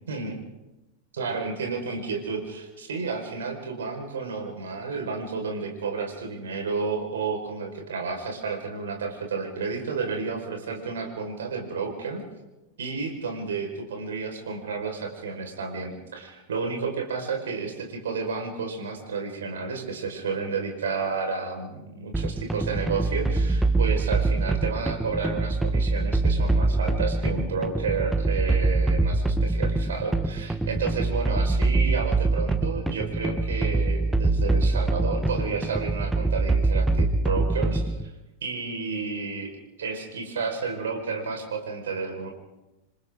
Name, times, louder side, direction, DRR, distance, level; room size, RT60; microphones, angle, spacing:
voice 1, 1.1-12.2 12.8-38.1 38.4-39.5 39.8-42.3, right 4 dB, 65° right, 3 dB, 5.0 m, -31 dB
sound 1, 22.1-38.1, right 2 dB, 5° right, 1.1 m, -24 dB
27.5 x 26.0 x 3.8 m, 1.0 s
figure-of-eight pair, 90°, 0 cm